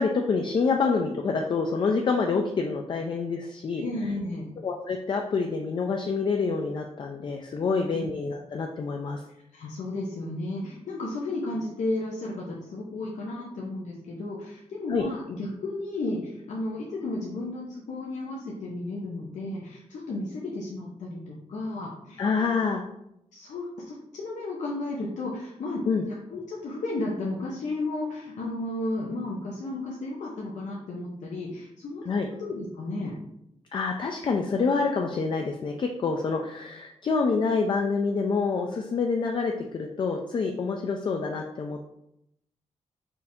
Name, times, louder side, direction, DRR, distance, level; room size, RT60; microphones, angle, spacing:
voice 1, 0.0-3.8 4.6-9.2 14.9-15.0 22.2-22.8 25.9-26.0 32.0-32.3 33.7-41.8, left 4 dB, 40° left, 2 dB, 0.3 m, -27 dB
voice 2, 3.8-4.5 7.6-8.1 9.5-22.5 23.3-32.0 32.4-33.1, left 2 dB, 85° left, -4 dB, 0.7 m, -33 dB
4.5 x 2.6 x 3.5 m, 0.80 s
wide cardioid pair, 155°, 12 cm